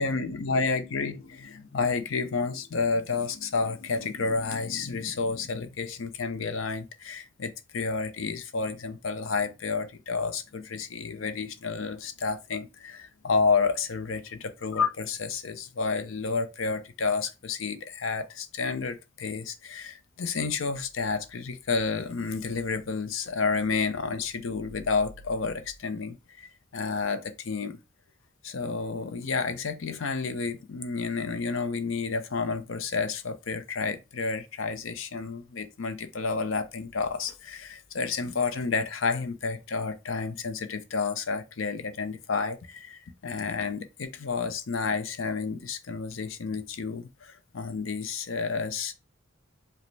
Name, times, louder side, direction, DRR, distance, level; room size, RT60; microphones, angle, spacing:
voice 1, 0.0-27.8 28.4-48.9, left 4 dB, 80° left, 0.6 m, -30 dB
5.0 x 2.1 x 3.2 m
head